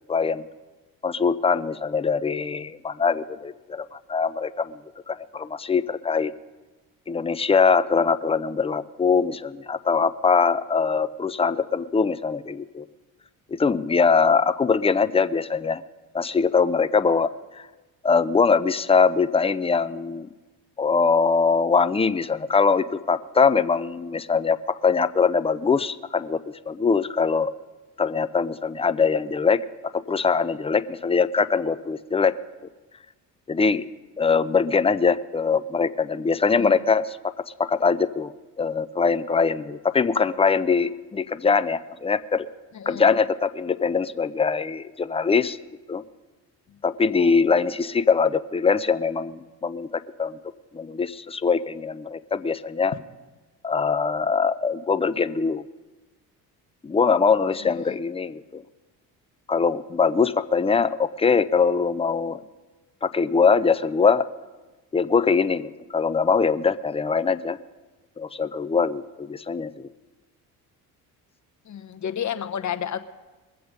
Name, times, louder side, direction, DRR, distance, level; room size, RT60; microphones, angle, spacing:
voice 1, 0.1-0.4 1.0-4.8 5.1-6.3 7.1-12.9 13.5-15.8 16.1-17.7 18.0-20.3 20.8-27.5 28.0-29.6 29.9-32.3 33.5-33.9 34.2-38.3 38.6-42.5 42.9-45.6 45.9-46.0 46.8-50.4 50.7-52.9 53.6-55.6 56.8-58.6 59.5-62.4 63.0-64.3 64.9-67.6 68.2-69.9, left 5 dB, 15° left, 14 dB, 0.5 m, -22 dB
voice 2, 57.6-58.0 71.6-73.0, left 9 dB, 40° left, 11 dB, 1.0 m, -31 dB
21.5 x 7.8 x 5.2 m, 1.2 s
hypercardioid pair, 60°, 45 cm